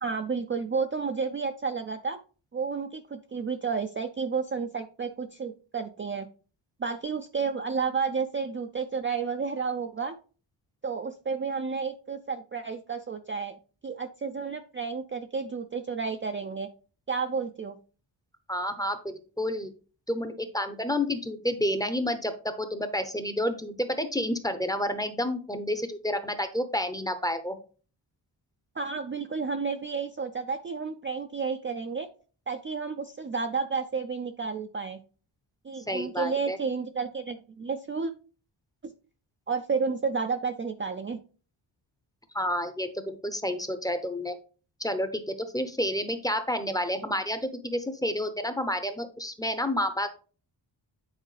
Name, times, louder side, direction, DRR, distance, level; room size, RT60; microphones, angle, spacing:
voice 1, 0.0-2.2 2.5-6.3 6.8-10.1 10.8-13.5 13.8-16.7 17.1-17.8 28.8-32.1 32.5-35.0 35.6-38.1 38.8-38.9 39.5-41.2, right 5 dB, 30° right, 6 dB, 0.4 m, -31 dB
voice 2, 18.5-19.7 20.1-27.6 35.9-36.6 42.3-44.4 44.8-50.1, left 1 dB, 10° left, 9 dB, 0.6 m, -30 dB
9.0 x 4.6 x 3.2 m, 0.38 s
wide cardioid pair, 160°, 45 cm